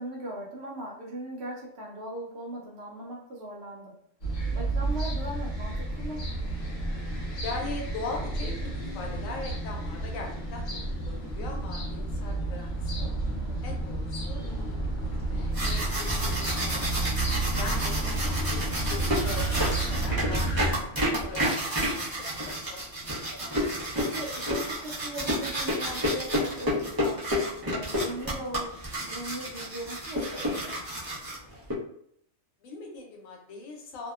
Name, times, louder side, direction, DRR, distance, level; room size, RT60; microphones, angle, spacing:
voice 1, 0.0-3.9 4.5-6.2 13.3-13.6 24.0-27.2 27.6-28.7 29.0-30.8, right 1 dB, 65° right, -3 dB, 0.8 m, -39 dB
sound 1, 4.2-20.7, right 2 dB, 45° left, 0.7 m, -31 dB
voice 2, 7.4-10.6 10.9-13.1 13.6-14.8 15.2-17.1 17.6-20.5 20.8-20.9 21.2-21.5 21.9-22.0 22.4-23.1 32.6-34.1, left 3 dB, 85° left, 0 dB, 1.0 m, -40 dB
sound 2, 15.3-31.7, equal, 40° right, 0.3 m, -30 dB
2.6 x 2.1 x 2.3 m, 0.68 s
omnidirectional pair, 1.4 m